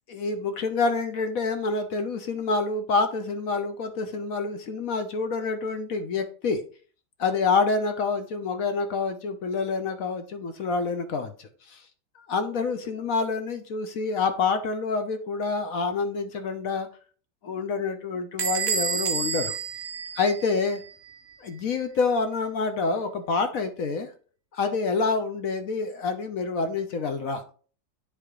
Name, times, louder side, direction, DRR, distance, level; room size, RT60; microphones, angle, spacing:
voice 1, 0.1-6.6 7.2-11.8 12.3-16.9 17.4-19.6 20.2-20.8 21.4-24.1 24.5-27.4, left 4 dB, 55° left, 8 dB, 1.1 m, -27 dB
Bell / Door, 18.4-20.9, right 6 dB, 55° right, 0.9 m, -29 dB
10.0 x 3.7 x 3.1 m, 0.40 s
omnidirectional pair, 2.0 m